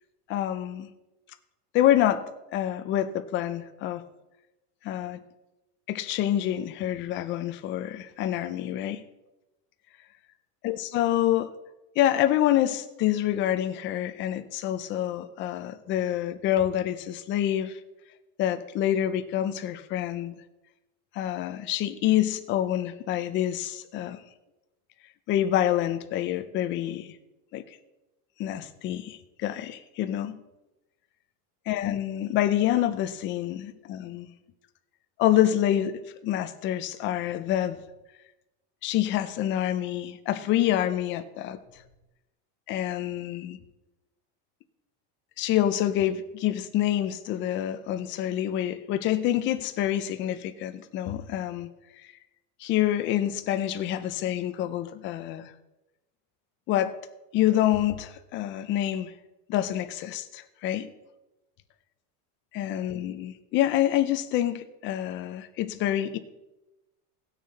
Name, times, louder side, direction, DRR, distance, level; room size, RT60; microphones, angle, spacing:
voice 1, 0.3-0.9 1.7-4.0 4.8-5.2 5.9-9.0 10.6-11.5 12.0-17.8 18.4-20.4 21.1-24.2 25.3-27.2 27.5-27.6 28.4-30.4 31.7-34.3 35.2-37.8 38.8-41.6 42.7-43.6 45.4-51.7 52.6-55.5 56.7-56.9 57.3-59.1 59.5-60.9 62.5-66.2, left 12 dB, 25° left, 0.5 m, -27 dB
18.0 x 6.6 x 4.0 m
supercardioid pair, 160°, 48 cm